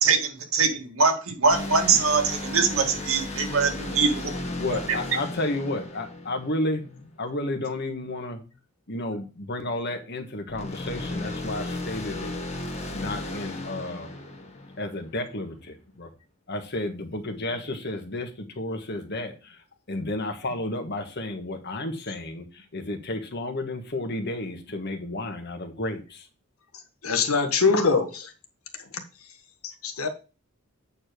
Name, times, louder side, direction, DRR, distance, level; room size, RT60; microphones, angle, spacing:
voice 1, 0.0-4.3 4.7-5.0, right 5 dB, 75° right, 3 dB, 2.0 m, -23 dB
sound 1, 1.5-7.0 10.5-15.2, left 2 dB, 30° left, 1.5 m, -35 dB
voice 2, 4.6-6.8 7.2-8.4 8.9-12.3 12.9-14.1 14.8-16.1 16.5-18.3 18.5-19.5 19.9-22.4 22.7-26.2, left 1 dB, 50° left, 5 dB, 1.5 m, -32 dB
voice 3, 27.0-28.3 28.9-29.0 29.6-30.1, left 4 dB, 85° left, 6 dB, 1.5 m, -23 dB
8.6 x 4.8 x 5.1 m, 0.33 s
head